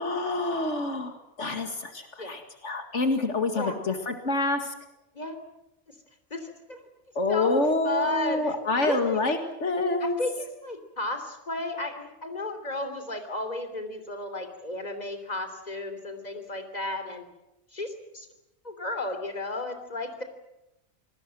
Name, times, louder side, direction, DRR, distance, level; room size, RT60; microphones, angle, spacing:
voice 1, 0.0-4.7 7.2-10.2, left 2 dB, 75° left, 6 dB, 2.4 m, -27 dB
voice 2, 6.3-6.8 7.3-9.2 10.0-17.3 17.7-18.3 18.6-20.2, left 2 dB, 35° left, 8 dB, 3.3 m, -33 dB
28.0 x 20.0 x 7.8 m, 0.91 s
omnidirectional pair, 1.2 m